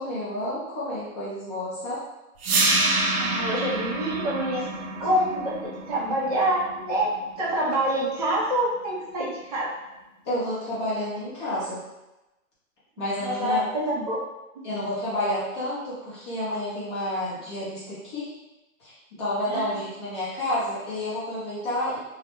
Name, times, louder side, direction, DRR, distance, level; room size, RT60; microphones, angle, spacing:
voice 1, 0.0-2.0 10.2-11.8 13.0-13.6 14.6-18.3 18.8-22.0, left 1 dB, 20° left, -9 dB, 0.6 m, -30 dB
sound 1, 2.4-8.4, right 2 dB, 85° right, 0.6 m, -28 dB
voice 2, 3.2-4.7 5.0-9.7 13.2-14.2 19.5-19.7, right 1 dB, 30° right, -6 dB, 0.5 m, -26 dB
2.3 x 2.1 x 2.9 m, 0.99 s
hypercardioid pair, 155°, 43 cm